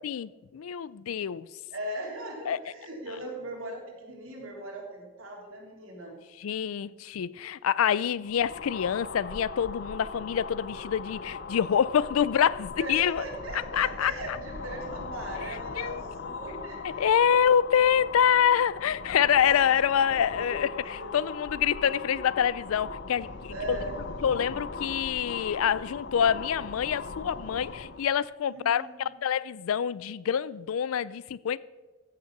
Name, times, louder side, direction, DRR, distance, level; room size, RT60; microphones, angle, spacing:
voice 1, 0.0-1.5 2.5-2.6 6.4-13.2 13.5-14.1 15.4-15.5 15.8-16.0 17.0-23.8 24.2-31.6, left 8 dB, 85° left, 0.4 m, -26 dB
voice 2, 1.7-6.2 12.7-17.3 20.0-20.5 21.0-21.1 23.5-24.0 28.5-29.2, right 1 dB, 75° right, 3.3 m, -39 dB
sound 1, 8.2-28.1, left 4 dB, 55° left, 0.7 m, -39 dB
15.0 x 6.7 x 5.9 m
head